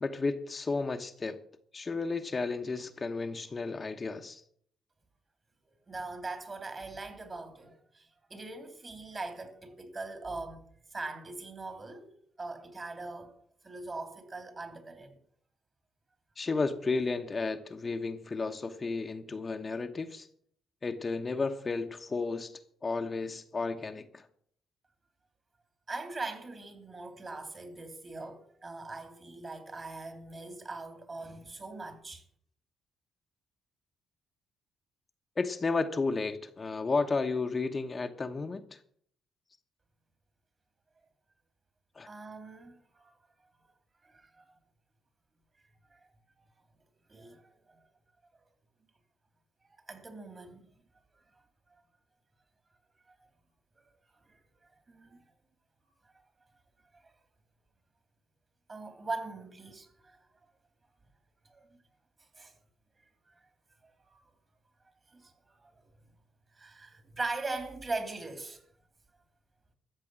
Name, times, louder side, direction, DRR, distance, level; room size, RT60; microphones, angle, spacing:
voice 1, 0.0-1.4 1.7-4.4 16.4-20.3 20.8-24.3 35.4-38.8 41.9-42.1, left 4 dB, 30° left, 1.0 m, -33 dB
voice 2, 5.9-12.1 12.4-13.3 13.6-15.1 25.9-32.2 42.1-43.1 44.0-44.6 45.9-46.0 47.1-47.8 49.9-50.7 54.3-54.4 54.9-55.2 58.7-60.2 61.5-61.7 62.4-62.5 64.0-64.2 65.1-65.3 65.6-65.8 66.6-68.6, right 3 dB, 30° right, 2.8 m, -41 dB
14.0 x 7.6 x 7.4 m
cardioid pair, 90°, 0 cm